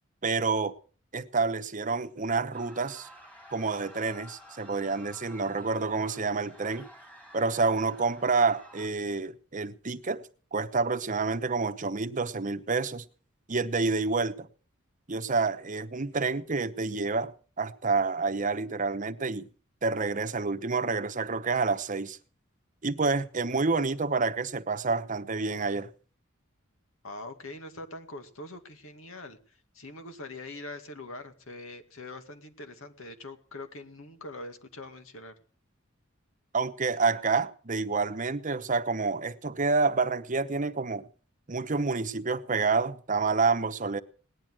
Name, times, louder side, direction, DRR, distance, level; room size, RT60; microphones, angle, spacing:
voice 1, 0.2-0.7 1.1-3.1 3.5-6.9 7.3-10.2 10.5-13.0 13.5-14.5 15.1-19.5 19.8-22.2 22.8-25.9 36.5-41.0 41.5-44.0, right 4 dB, 40° right, 0.9 m, -28 dB
sound 1, 2.5-8.9, equal, 5° left, 2.7 m, -51 dB
voice 2, 27.0-29.4 29.7-35.4, left 2 dB, 85° left, 2.2 m, -43 dB
18.5 x 10.5 x 6.2 m
head